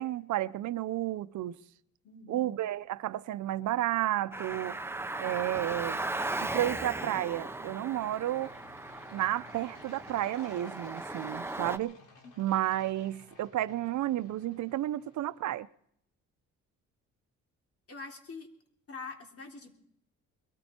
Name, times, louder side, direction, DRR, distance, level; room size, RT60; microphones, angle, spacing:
voice 1, 0.0-1.6 2.3-4.8 5.2-6.0 6.4-8.5 9.1-12.0 12.4-15.7, right 13 dB, 70° right, 0.7 m, -32 dB
voice 2, 2.0-2.6 12.2-12.3 17.9-18.5 18.9-19.8, left 4 dB, 50° left, 3.3 m, -44 dB
Low Airplane Fly By, 3.4-15.6, left 3 dB, 85° left, 4.2 m, -58 dB
Car, 4.3-11.8, right 2 dB, 10° right, 0.8 m, -37 dB
22.0 x 13.5 x 4.4 m
cardioid pair, 90°, 30 cm